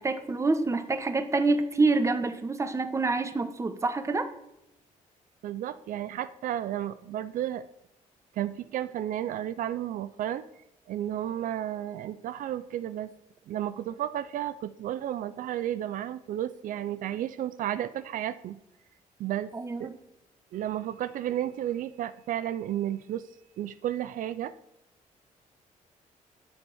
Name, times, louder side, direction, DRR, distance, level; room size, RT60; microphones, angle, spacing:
voice 1, 0.0-4.3 19.5-19.9, right 3 dB, 20° right, 9 dB, 1.3 m, -27 dB
voice 2, 5.4-7.6 8.3-10.4 10.9-13.1 13.5-18.6 19.2-19.5 19.8-19.9 20.5-23.3 23.6-24.5, right 11 dB, 75° right, 13 dB, 0.6 m, -32 dB
11.0 x 7.0 x 9.6 m, 0.84 s
cardioid pair, 130°, 14 cm